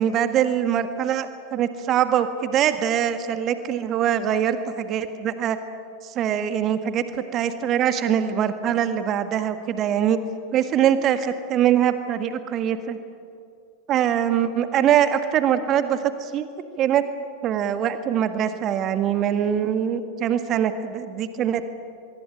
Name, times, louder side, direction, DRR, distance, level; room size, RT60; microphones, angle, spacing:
voice 1, 0.0-5.6 6.0-7.0 7.3-10.2 10.5-13.0 13.9-16.5 16.8-17.0 17.4-21.7, right 9 dB, 35° right, 9 dB, 1.7 m, -23 dB
23.5 x 23.5 x 9.1 m, 2.4 s
figure-of-eight pair, 90°, 0 cm